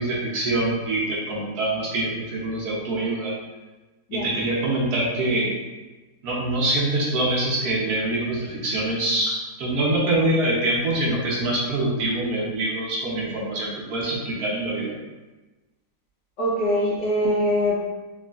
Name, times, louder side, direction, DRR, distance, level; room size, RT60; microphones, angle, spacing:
voice 1, 0.0-3.3 4.1-5.5 6.2-14.9, right 1 dB, 65° right, -5 dB, 1.2 m, -24 dB
voice 2, 16.4-17.9, equal, 70° left, -5 dB, 1.5 m, -23 dB
3.7 x 3.2 x 2.4 m, 1.2 s
omnidirectional pair, 1.9 m